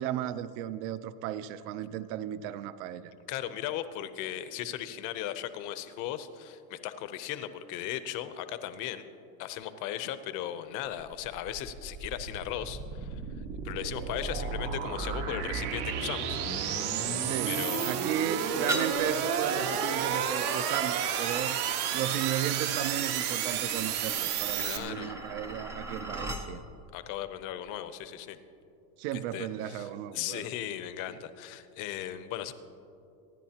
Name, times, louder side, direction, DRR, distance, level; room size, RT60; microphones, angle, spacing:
voice 1, 0.0-3.1 17.3-21.6 21.9-26.6 29.0-30.5, right 11 dB, 50° right, 0.6 m, -35 dB
voice 2, 3.3-9.0 9.4-13.2 13.6-16.4 17.5-18.0 24.6-25.2 26.9-28.4 29.1-29.9 30.1-32.5, left 11 dB, 40° left, 0.7 m, -37 dB
sound 1, 11.0-24.8, right 7 dB, 70° right, 1.5 m, -31 dB
sound 2, 18.7-26.5, right 1 dB, 5° right, 0.4 m, -40 dB
26.5 x 10.5 x 2.9 m
cardioid pair, 160°, 46 cm